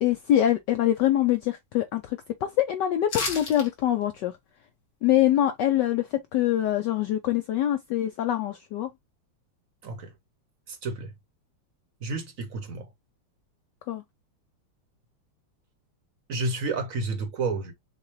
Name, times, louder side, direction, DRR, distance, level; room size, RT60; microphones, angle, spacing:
voice 1, 0.0-4.3 5.0-8.9 13.9-14.0, left 12 dB, 75° left, 1.0 m, -24 dB
sound 1, 3.1-3.7 4.0-4.1, left 4 dB, 60° left, 2.6 m, -31 dB
voice 2, 10.7-11.1 12.0-12.9 16.3-17.7, right 3 dB, 55° right, 1.0 m, -30 dB
6.5 x 2.3 x 3.0 m
omnidirectional pair, 2.4 m